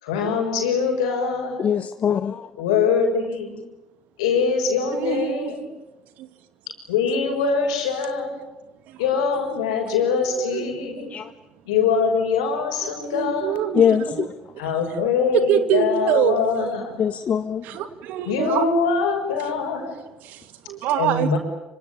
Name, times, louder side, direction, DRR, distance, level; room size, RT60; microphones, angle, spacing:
voice 1, 0.0-1.7 2.6-3.6 4.2-5.7 6.9-8.3 9.0-11.1 11.7-13.7 14.6-17.0 18.3-19.9 21.0-21.4, left 5 dB, 80° left, 6.1 m, -23 dB
voice 2, 1.6-2.5 11.1-11.3 13.7-14.3 17.0-17.8, left 8 dB, 45° left, 1.1 m, -22 dB
voice 3, 4.9-5.7 6.2-6.3 8.9-9.0 9.5-9.6 10.2-10.7 12.8-13.8 14.2-14.3 14.6-15.0 15.3-16.7 17.6-18.7 20.2-21.4, right 11 dB, 65° right, 2.4 m, -25 dB
26.0 x 25.0 x 8.9 m
hypercardioid pair, 55°, 3 cm